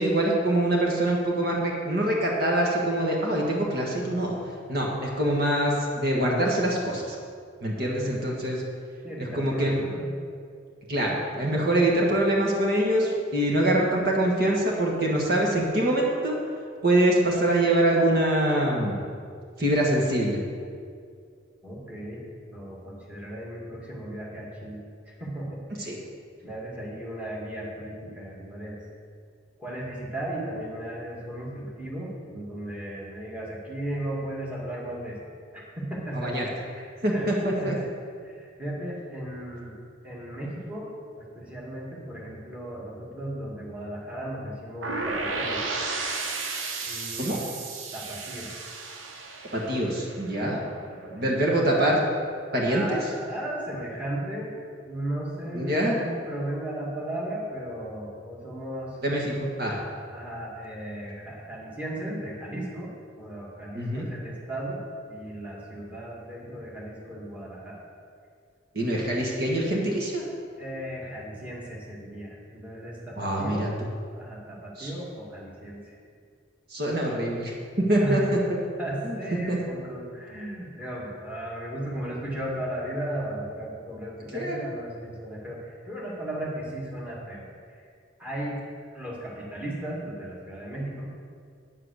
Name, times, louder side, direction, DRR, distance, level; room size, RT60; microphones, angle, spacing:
voice 1, 0.0-4.4 4.7-7.1 7.6-8.6 9.3-9.8 10.9-16.4 16.8-19.0 19.6-20.4 25.8-26.0 36.1-36.4 36.8-37.7 47.2-47.4 49.5-50.6 51.1-52.0 52.5-53.0 55.5-56.0 59.0-59.8 63.7-64.1 68.7-70.2 73.2-73.7 74.8-74.9 76.7-77.5 77.9-78.2 79.0-79.2 79.5-79.6 84.3-84.7, right 1 dB, 55° right, -2 dB, 1.6 m, -24 dB
voice 2, 7.8-8.1 9.0-10.1 21.6-22.2 22.5-25.9 26.4-28.8 29.6-35.2 35.5-36.3 37.1-37.3 37.6-37.9 38.2-45.7 46.8-47.4 47.9-48.5 50.3-50.6 50.9-51.3 52.6-54.6 54.8-59.0 59.8-67.8 70.6-73.8 74.1-75.9 78.0-78.3 78.8-87.8 88.2-88.6 88.9-91.1, right 1 dB, 10° right, -5 dB, 2.2 m, -36 dB
sound 1, 44.8-50.7, right 3 dB, 90° right, 1.1 m, -33 dB
9.5 x 7.7 x 6.5 m, 2.2 s
head